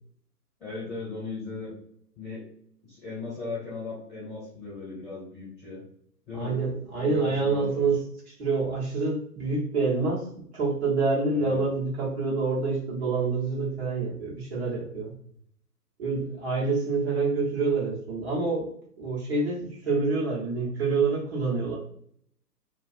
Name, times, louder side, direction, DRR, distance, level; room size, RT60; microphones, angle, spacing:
voice 1, 0.6-1.7 2.1-2.5 2.8-5.8 6.3-6.6 7.0-7.9 11.3-11.7, left 4 dB, ahead, -25 dB, 0.6 m, -37 dB
voice 2, 6.3-8.0 8.4-10.3 10.5-15.1 16.0-18.7 19.0-21.8, right 4 dB, 40° right, -5 dB, 0.9 m, -27 dB
2.4 x 2.3 x 2.4 m, 0.65 s
figure-of-eight pair, 130°, 48 cm